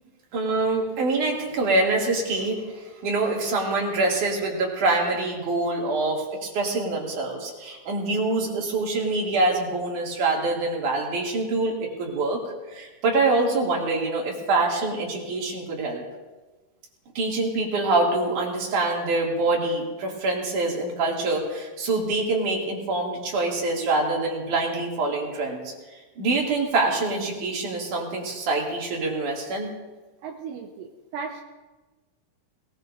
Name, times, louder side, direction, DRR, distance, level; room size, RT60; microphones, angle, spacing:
voice 1, 0.3-16.0 17.2-29.7, right 2 dB, 65° right, -2 dB, 4.0 m, -25 dB
voice 2, 30.2-31.4, right 5 dB, 85° right, 1 dB, 2.6 m, -36 dB
20.5 x 19.5 x 2.6 m, 1.2 s
omnidirectional pair, 3.9 m